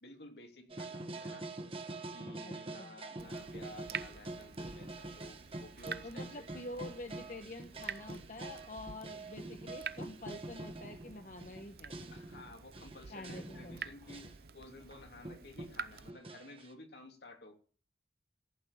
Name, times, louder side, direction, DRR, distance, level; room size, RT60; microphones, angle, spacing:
voice 1, 0.0-1.5 2.1-6.8 12.1-17.5, left 1 dB, 70° left, 4 dB, 2.8 m, -53 dB
sound 1, 0.7-14.4 14.9-15.0 15.2-16.8, right 2 dB, 30° right, 1.5 m, -45 dB
voice 2, 2.4-3.0 6.0-11.9 13.1-13.9, left 2 dB, 45° left, 6 dB, 1.1 m, -47 dB
Water tap faucet / Drip, 3.2-16.1, right 6 dB, 60° right, 0.6 m, -48 dB
15.0 x 8.8 x 7.3 m, 0.43 s
head